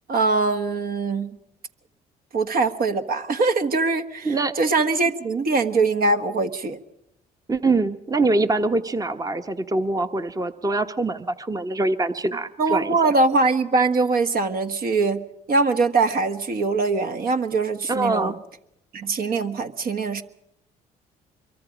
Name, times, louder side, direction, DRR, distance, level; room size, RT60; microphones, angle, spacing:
voice 1, 0.1-1.4 2.3-6.8 12.6-18.3 18.9-20.2, right 3 dB, 55° right, 7 dB, 1.5 m, -22 dB
voice 2, 4.2-4.7 7.5-13.1 17.9-18.4, right 2 dB, 20° right, 9 dB, 1.0 m, -24 dB
25.0 x 23.5 x 5.1 m, 0.84 s
supercardioid pair, 60°, 18 cm